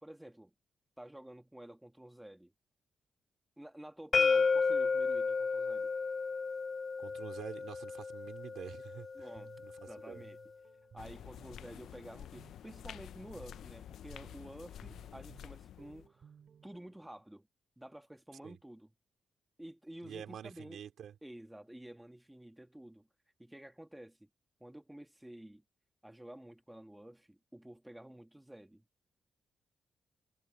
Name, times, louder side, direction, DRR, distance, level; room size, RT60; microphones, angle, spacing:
voice 1, 0.0-0.5 1.0-2.5 3.6-5.9 9.1-9.5 9.9-10.4 10.9-16.3 16.6-17.5 17.8-18.9 19.6-20.8 21.2-23.1 23.4-24.3 24.6-25.6 26.0-28.8, right 1 dB, 5° right, 1.5 m, -51 dB
sound 1, 4.1-9.9, left 4 dB, 30° left, 0.4 m, -32 dB
voice 2, 7.0-9.3 9.6-10.3 18.4-18.6 20.0-21.1, right 9 dB, 70° right, 3.2 m, -47 dB
Guitar, 9.1-17.1, right 7 dB, 45° right, 5.7 m, -61 dB
sound 2, 11.0-16.1, left 10 dB, 90° left, 0.5 m, -50 dB
wide cardioid pair, 175°, 0 cm